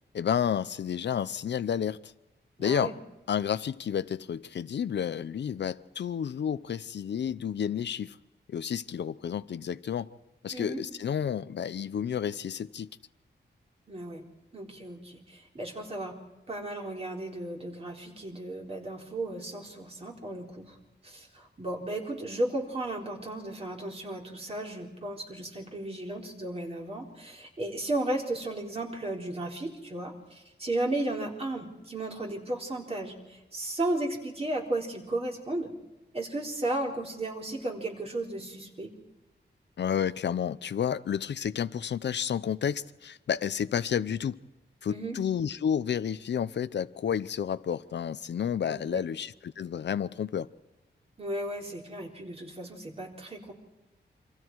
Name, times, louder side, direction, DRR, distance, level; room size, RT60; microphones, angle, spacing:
voice 1, 0.1-2.1 2.6-2.9 3.3-8.2 8.5-10.1 10.4-12.9 39.8-44.4 44.8-50.5, left 8 dB, 75° left, 14 dB, 0.8 m, -31 dB
voice 2, 2.6-2.9 10.5-10.8 13.9-14.3 14.5-16.2 16.5-20.8 21.0-35.7 36.1-38.9 44.9-45.2 48.7-49.0 51.2-53.5, right 1 dB, 35° right, 0 dB, 4.2 m, -34 dB
28.5 x 26.0 x 4.7 m, 1.0 s
wide cardioid pair, 140°, 18 cm